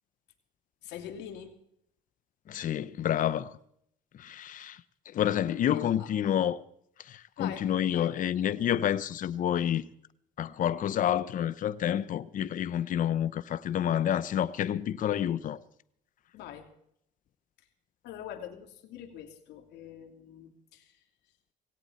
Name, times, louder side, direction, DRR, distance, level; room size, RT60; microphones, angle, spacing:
voice 1, 0.8-1.6 5.7-6.1 7.4-8.1 16.3-16.7 17.6-17.7 18.0-21.0, left 10 dB, 80° left, 2.8 m, -44 dB
voice 2, 2.5-3.5 4.1-4.8 5.1-6.6 7.0-9.9 10.4-15.6, left 10 dB, 50° left, 0.8 m, -29 dB
18.5 x 17.0 x 4.3 m
cardioid pair, 110°, 17 cm